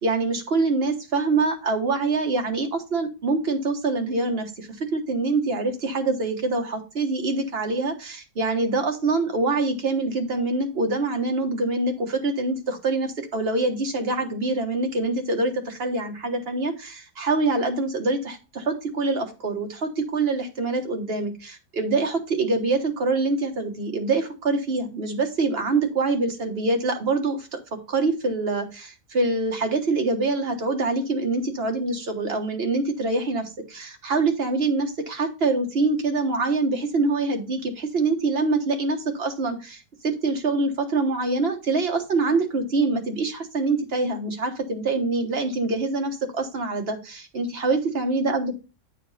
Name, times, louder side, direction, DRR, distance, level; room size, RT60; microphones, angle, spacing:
voice 1, 0.0-48.5, right 3 dB, 40° right, 4 dB, 1.4 m, -25 dB
8.6 x 4.9 x 4.1 m, 0.31 s
omnidirectional pair, 1.8 m